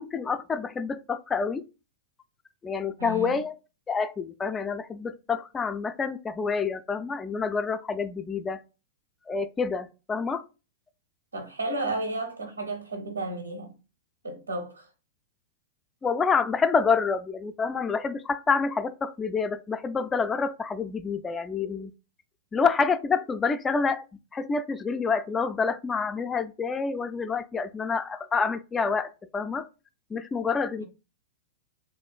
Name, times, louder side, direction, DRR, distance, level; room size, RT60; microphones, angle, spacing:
voice 1, 0.0-1.6 2.6-3.5 3.9-8.6 9.3-10.4 16.0-21.9 22.5-24.0 24.3-29.7 30.1-30.8, left 5 dB, 20° left, 0.3 m, -27 dB
voice 2, 3.0-3.4 11.3-13.7 14.2-14.9 30.8-30.9, right 2 dB, 90° right, 0.7 m, -33 dB
3.6 x 2.4 x 2.2 m
figure-of-eight pair, 100°, 0 cm